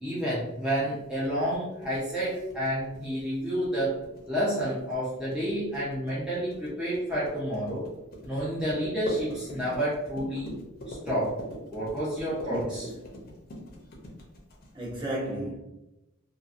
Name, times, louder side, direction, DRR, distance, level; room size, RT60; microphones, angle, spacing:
voice 1, 0.0-7.9 8.2-10.5 10.9-11.4 11.7-12.9, equal, 5° right, 0.6 m, -30 dB
sound 1, 1.2-15.0, equal, 50° left, 0.6 m, -42 dB
voice 2, 12.5-13.0 14.7-15.6, right 1 dB, 25° right, 1.0 m, -33 dB
2.8 x 2.4 x 2.4 m
head